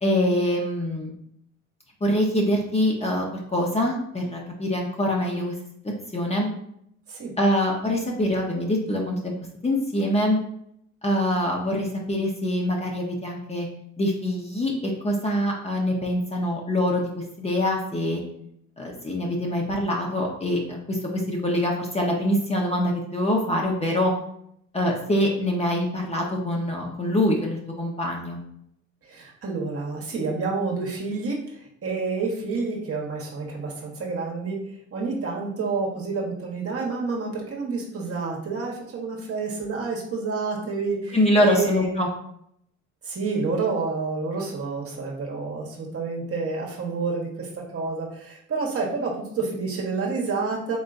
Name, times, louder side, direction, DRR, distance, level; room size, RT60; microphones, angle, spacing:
voice 1, 0.0-1.1 2.0-3.3 3.5-5.5 6.1-6.5 7.4-9.3 9.6-10.4 11.0-13.7 14.0-18.2 18.8-21.0 21.3-24.1 24.7-28.4 41.1-42.1, left 1 dB, 20° left, -1 dB, 1.0 m, -24 dB
voice 2, 29.0-34.6 34.9-41.9 43.0-50.8, right 4 dB, 50° right, -2 dB, 1.3 m, -29 dB
4.1 x 3.6 x 2.6 m, 0.72 s
cardioid pair, 90°, 30 cm